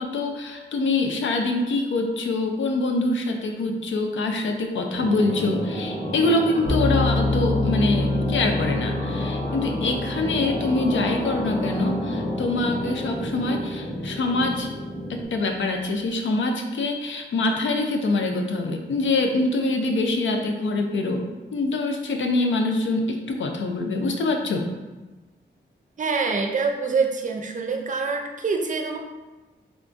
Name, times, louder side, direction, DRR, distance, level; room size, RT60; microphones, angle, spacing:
voice 1, 0.0-14.7 15.1-21.2 21.5-24.7, left 2 dB, 80° left, 3 dB, 0.5 m, -25 dB
sound 1, 4.9-15.2, equal, 25° left, 0.9 m, -30 dB
sound 2, 6.7-13.8, left 2 dB, 45° left, 1.1 m, -28 dB
voice 2, 26.0-29.0, right 4 dB, 40° right, 3 dB, 0.5 m, -25 dB
3.6 x 3.4 x 2.5 m, 1.2 s
wide cardioid pair, 105°, 20 cm